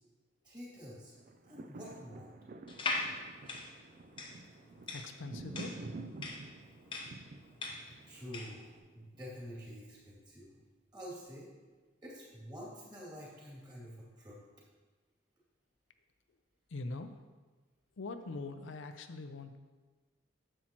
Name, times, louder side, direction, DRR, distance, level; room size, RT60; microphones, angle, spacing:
voice 1, 0.4-1.1 1.5-2.3 8.1-8.7 8.9-10.5 10.9-11.5 12.0-14.4, equal, 20° right, -6 dB, 2.4 m, -48 dB
sound 1, 1.1-9.4 9.9-10.0, right 2 dB, 40° right, 0.3 m, -49 dB
sound 2, 2.7-8.6, left 2 dB, 25° left, 0.7 m, -40 dB
voice 2, 4.9-5.8 16.7-17.1 18.0-19.6, left 3 dB, 70° left, 7 dB, 0.5 m, -42 dB
10.0 x 7.4 x 3.0 m, 1.3 s
head